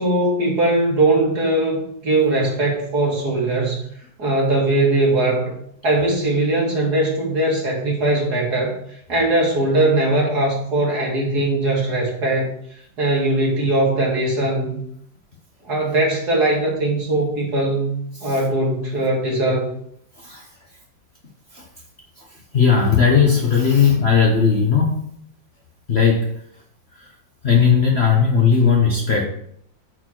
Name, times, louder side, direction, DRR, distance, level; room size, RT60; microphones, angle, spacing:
voice 1, 0.0-3.8 4.2-5.5 5.8-8.8 9.1-12.5 13.0-14.8 15.6-19.7, right 2 dB, 55° right, -2 dB, 2.7 m, -20 dB
voice 2, 20.2-20.5 21.5-21.7 22.2-22.3 22.5-25.0 25.9-26.3 27.0-27.1 27.4-29.3, left 6 dB, 40° left, 0 dB, 1.0 m, -17 dB
9.2 x 4.4 x 4.4 m, 0.68 s
omnidirectional pair, 2.0 m